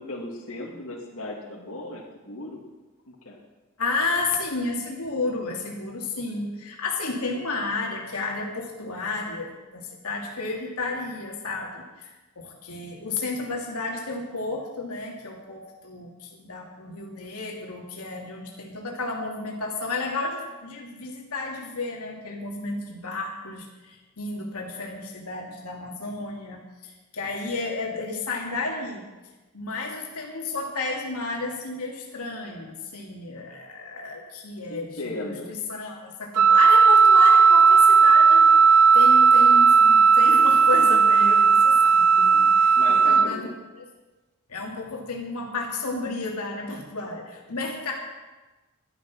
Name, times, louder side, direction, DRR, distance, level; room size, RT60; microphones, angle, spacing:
voice 1, 0.0-2.6 3.1-3.4 34.7-35.5 42.7-43.5, left 2 dB, 65° left, -2 dB, 2.4 m, -36 dB
voice 2, 3.8-29.0 29.5-43.5 43.7-43.9 44.5-47.9, left 3 dB, 85° left, -1 dB, 2.4 m, -32 dB
Wind instrument woodwind instrument, 36.4-43.3, right 5 dB, 90° right, 0.5 m, -15 dB
12.0 x 11.5 x 6.1 m, 1.2 s
head